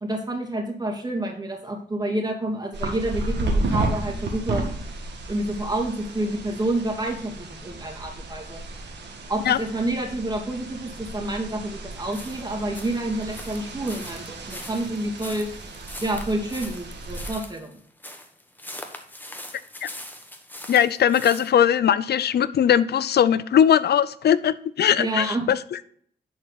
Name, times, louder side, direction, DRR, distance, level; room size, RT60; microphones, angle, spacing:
voice 1, 0.0-4.7 5.3-8.6 9.3-15.5 16.0-17.7 25.0-25.5, right 1 dB, 20° right, 0 dB, 2.4 m, -28 dB
sound 1, 2.7-17.3, right 2 dB, 70° right, 1.7 m, -33 dB
sound 2, 12.1-21.5, left 1 dB, 10° left, 1.4 m, -41 dB
voice 2, 20.7-25.9, left 9 dB, 65° left, 17 dB, 0.5 m, -20 dB
10.0 x 4.3 x 4.0 m, 0.63 s
cardioid pair, 60°, 18 cm